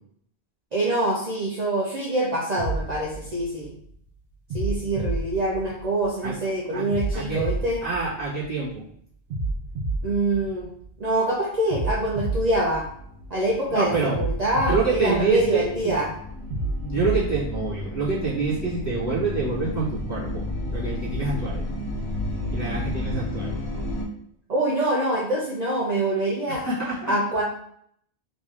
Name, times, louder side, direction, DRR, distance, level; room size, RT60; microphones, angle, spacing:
voice 1, 0.7-3.7 4.5-7.8 10.0-10.7 11.0-12.9 13.3-16.1 24.5-26.6 27.1-27.4, right 1 dB, 45° right, -4 dB, 0.7 m, -25 dB
sound 1, 2.6-3.9 4.5-6.2 6.9-8.7 9.3-11.1 11.7-13.5 14.1-15.8 16.5-17.9, right 2 dB, 90° right, 1.1 m, -30 dB
voice 2, 7.1-7.5 7.8-8.8 13.7-14.2 14.7-15.9 16.8-20.5 20.7-21.7 22.5-23.6 26.5-27.1, right 4 dB, 15° left, -8 dB, 1.5 m, -26 dB
sound 2, 12.9-24.0, left 1 dB, 45° left, 1.1 m, -32 dB
3.6 x 3.0 x 3.2 m, 0.67 s
omnidirectional pair, 1.1 m